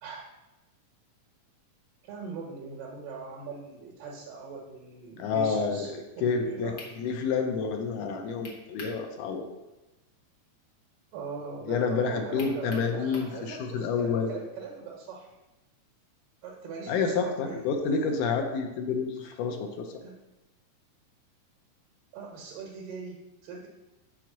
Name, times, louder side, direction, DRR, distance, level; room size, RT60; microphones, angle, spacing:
voice 1, 2.0-6.8 11.1-15.4 16.4-17.7 19.2-19.3 20.0-20.2 22.1-23.7, right 4 dB, 85° right, -2 dB, 2.7 m, -41 dB
voice 2, 5.2-6.7 7.0-9.4 11.7-14.3 16.9-19.9, left 5 dB, 80° left, 4 dB, 2.1 m, -29 dB
sound 1, 6.8-7.0 8.4-9.0 9.4-9.5 12.4-13.4, left 3 dB, 60° left, 1.1 m, -44 dB
6.2 x 4.5 x 6.0 m, 1.0 s
omnidirectional pair, 3.7 m